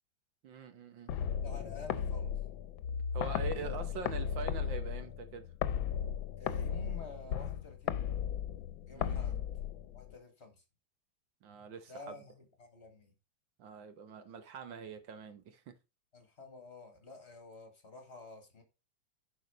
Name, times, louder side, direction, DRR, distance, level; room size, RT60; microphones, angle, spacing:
voice 1, 0.4-1.1 3.1-5.5 8.9-9.4 11.4-12.1 13.6-15.7, right 6 dB, 75° right, 1.8 m, -44 dB
sound 1, 1.1-10.1, left 8 dB, 85° left, 1.4 m, -36 dB
voice 2, 1.4-2.3 3.6-3.8 6.4-8.2 8.9-9.4 9.9-10.5 11.9-13.1 16.1-18.6, left 2 dB, 35° left, 2.3 m, -50 dB
10.5 x 5.0 x 5.2 m
omnidirectional pair, 2.1 m